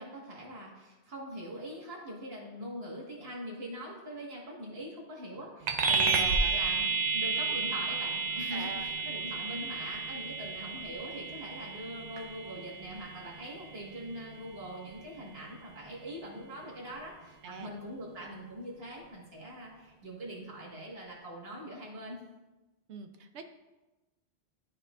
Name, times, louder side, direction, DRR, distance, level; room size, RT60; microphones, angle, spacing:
voice 1, 0.0-6.9 7.1-22.2, equal, 65° right, -5 dB, 1.9 m, -42 dB
sound 1, 5.7-15.5, right 4 dB, 50° right, 0.6 m, -32 dB
voice 2, 8.5-8.9 17.4-17.7 22.9-23.5, right 6 dB, 90° right, 6 dB, 1.0 m, -44 dB
12.5 x 4.2 x 2.5 m, 1.1 s
omnidirectional pair, 1.1 m